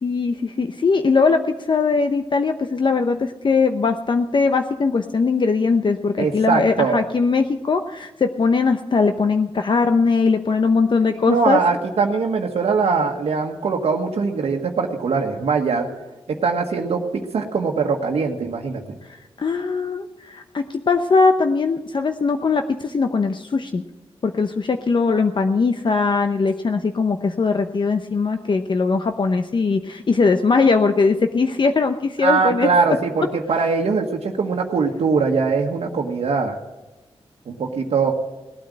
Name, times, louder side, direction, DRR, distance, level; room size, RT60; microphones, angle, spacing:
voice 1, 0.0-11.6 19.0-23.8 24.2-32.7, left 4 dB, 50° left, 7 dB, 0.8 m, -20 dB
voice 2, 6.2-7.0 11.1-15.9 16.3-18.8 32.2-36.6 37.5-38.1, right 5 dB, 85° right, 0 dB, 1.4 m, -21 dB
18.5 x 9.1 x 7.5 m, 1.1 s
wide cardioid pair, 90°, 10 cm